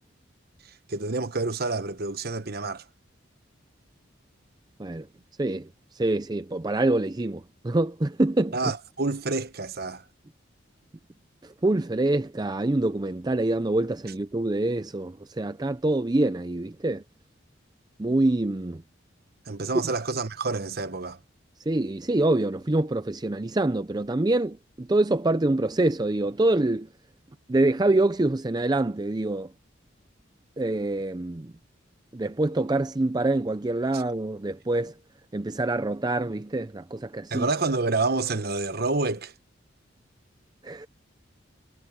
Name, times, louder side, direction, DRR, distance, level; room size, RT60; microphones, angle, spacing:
voice 1, 0.9-2.8 8.5-10.0 19.5-21.2 33.9-34.0 37.3-39.3, right 3 dB, 50° right, 1.1 m, -28 dB
voice 2, 5.9-8.7 11.4-17.0 18.0-18.8 21.7-26.9 27.5-29.5 30.6-31.5 32.1-34.9 35.3-37.5 40.6-40.9, right 2 dB, 20° right, 0.5 m, -25 dB
head